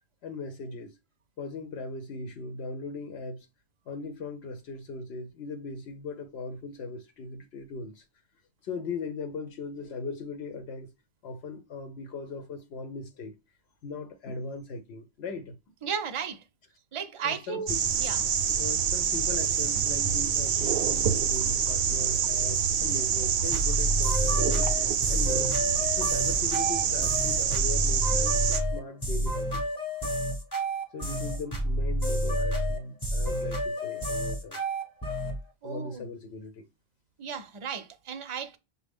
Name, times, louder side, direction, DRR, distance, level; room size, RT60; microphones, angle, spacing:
voice 1, 0.2-1.0 1.4-3.5 3.9-8.0 8.6-10.9 11.2-13.3 13.8-15.6 17.2-17.8 18.6-24.7 25.1-25.6 25.9-28.4 28.7-29.6 30.0-30.1 30.9-34.6 35.6-36.7, left 3 dB, 80° left, 0.9 m, -38 dB
voice 2, 15.8-16.4 16.9-17.7 18.0-18.2 35.6-36.0 37.2-38.6, right 7 dB, 40° right, 0.5 m, -34 dB
sound 1, 17.7-28.6, right 8 dB, 70° right, 0.8 m, -26 dB
sound 2, 23.5-35.4, equal, 20° left, 0.9 m, -29 dB
6.1 x 2.1 x 3.4 m
omnidirectional pair, 1.1 m